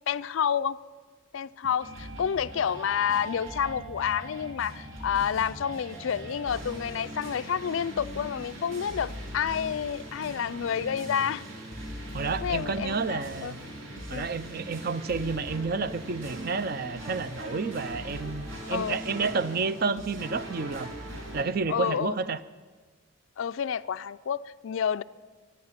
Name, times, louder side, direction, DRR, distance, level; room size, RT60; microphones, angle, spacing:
voice 1, 0.1-0.8 1.3-11.4 12.4-13.5 14.1-14.3 18.7-19.0 21.7-22.2 23.4-25.0, left 8 dB, 65° left, 16 dB, 0.4 m, -29 dB
sound 1, 1.8-21.4, equal, 70° right, 3.2 m, -40 dB
voice 2, 12.1-13.6 14.1-20.9 21.3-22.4, right 4 dB, 45° right, 14 dB, 0.5 m, -30 dB
24.0 x 9.7 x 5.8 m, 1.5 s
head